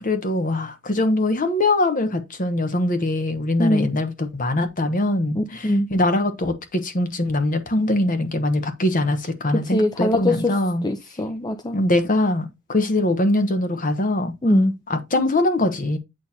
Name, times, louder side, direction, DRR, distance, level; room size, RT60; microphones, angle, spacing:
voice 1, 0.0-10.9 11.7-14.3 14.9-16.0, left 1 dB, 40° left, 1.1 m, -22 dB
voice 2, 3.6-3.9 5.4-5.9 9.7-10.5 10.8-11.8 14.4-14.8, left 1 dB, 20° left, 0.5 m, -21 dB
8.8 x 3.3 x 4.2 m
head